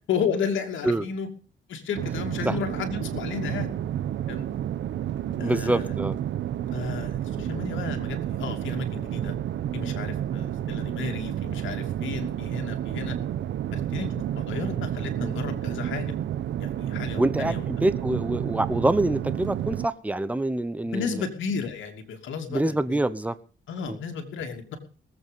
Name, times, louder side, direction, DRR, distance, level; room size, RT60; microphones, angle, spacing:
voice 1, 0.1-1.3 1.7-3.7 4.3-4.5 5.4-5.9 6.7-9.4 9.7-13.2 13.7-16.1 16.6-17.6 20.8-23.0 23.7-24.8, left 6 dB, 75° left, 4 dB, 2.8 m, -33 dB
sound 1, 1.9-19.9, right 11 dB, 70° right, 0.9 m, -30 dB
voice 2, 5.4-6.2 17.2-21.2 22.5-23.4 23.9-24.0, right 1 dB, 5° right, 13 dB, 1.0 m, -25 dB
19.0 x 8.3 x 5.3 m, 0.39 s
cardioid pair, 90°, 20 cm